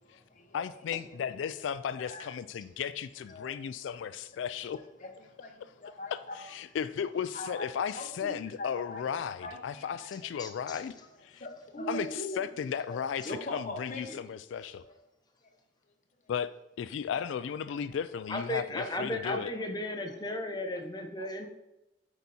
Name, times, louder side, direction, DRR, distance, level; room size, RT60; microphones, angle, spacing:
voice 1, 0.0-0.6 2.0-2.3 3.3-3.6 4.7-6.4 7.3-7.7 7.9-9.0 9.4-10.3 11.4-12.5 12.9-14.2 14.9-15.0, left 1 dB, 45° left, 2 dB, 1.1 m, -41 dB
voice 2, 0.5-4.8 6.4-10.9 11.2-11.5 11.9-14.8 16.3-16.5 16.8-19.5, left 7 dB, 75° left, 13 dB, 0.3 m, -35 dB
voice 3, 10.4-10.8 18.3-21.5, left 1 dB, 20° left, 4 dB, 0.9 m, -35 dB
8.1 x 4.1 x 4.2 m, 0.91 s
head